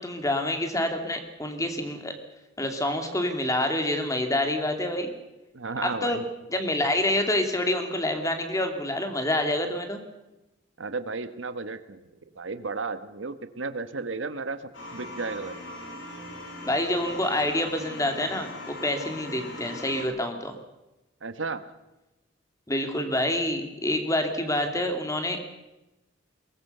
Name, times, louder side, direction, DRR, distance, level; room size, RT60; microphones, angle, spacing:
voice 1, 0.0-2.1 2.6-5.1 5.8-6.2 6.5-10.0 16.6-20.6 22.7-25.4, left 1 dB, 15° left, 5 dB, 2.6 m, -27 dB
voice 2, 5.5-6.3 10.8-12.1 12.3-14.6 14.9-15.6 21.2-21.6, right 4 dB, 80° right, 10 dB, 1.3 m, -33 dB
sound 1, 14.7-20.0, left 1 dB, 85° left, 6.1 m, -40 dB
22.5 x 19.5 x 6.7 m, 1.0 s
head